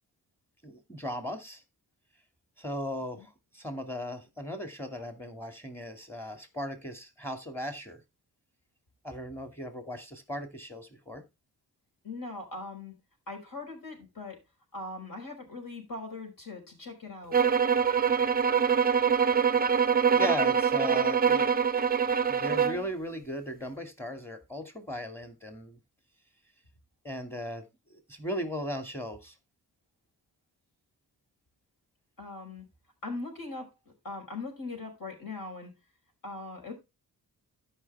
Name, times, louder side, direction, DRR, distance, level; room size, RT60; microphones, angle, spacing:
voice 1, 0.6-1.6 2.6-8.0 9.0-11.2 20.1-21.5 22.3-25.8 27.0-27.6 27.9-29.3, equal, 5° left, 6 dB, 2.5 m, -37 dB
voice 2, 12.0-12.9 13.3-14.4 14.7-17.4 32.2-32.6 33.0-35.7 36.2-36.7, left 3 dB, 55° left, 2 dB, 5.3 m, -40 dB
sound 1, 17.3-22.8, right 7 dB, 25° right, 0.5 m, -24 dB
13.5 x 5.8 x 3.5 m, 0.25 s
cardioid pair, 85°, 39 cm